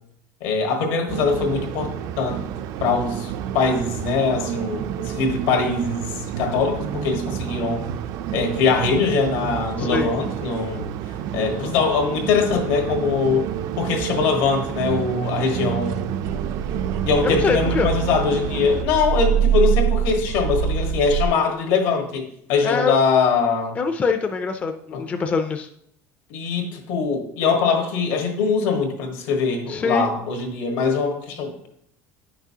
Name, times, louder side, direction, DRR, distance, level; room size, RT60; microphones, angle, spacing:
voice 1, 0.4-2.4 2.8-7.9 8.3-10.9 11.3-13.5 13.8-16.1 17.0-23.8 24.9-25.0 26.3-31.7, left 5 dB, 80° left, 2 dB, 1.5 m, -22 dB
sound 1, 1.1-18.8, right 10 dB, 55° right, 0.4 m, -30 dB
voice 2, 9.8-10.2 17.2-17.9 22.6-22.9 23.8-25.7 29.7-30.1, left 4 dB, 20° left, 6 dB, 0.4 m, -23 dB
sound 2, 16.2-21.3, right 9 dB, 75° right, 0.7 m, -24 dB
9.5 x 5.9 x 2.8 m, 0.71 s
cardioid pair, 155°, 7 cm